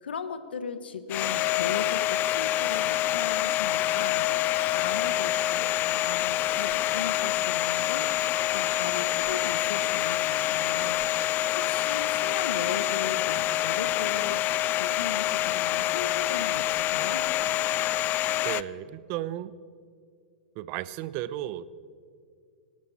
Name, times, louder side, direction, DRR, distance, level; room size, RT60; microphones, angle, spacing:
voice 1, 0.0-4.3 4.6-8.1 8.5-11.0 11.6-14.4 14.7-17.2, left 6 dB, 80° left, 11 dB, 1.3 m, -37 dB
Domestic sounds home sounds, 1.1-18.6, left 14 dB, 35° left, 0.4 m, -26 dB
voice 2, 18.4-19.5 20.6-21.7, right 13 dB, 45° right, 16 dB, 0.7 m, -34 dB
25.0 x 12.5 x 4.3 m, 2.2 s
hypercardioid pair, 110°, 5 cm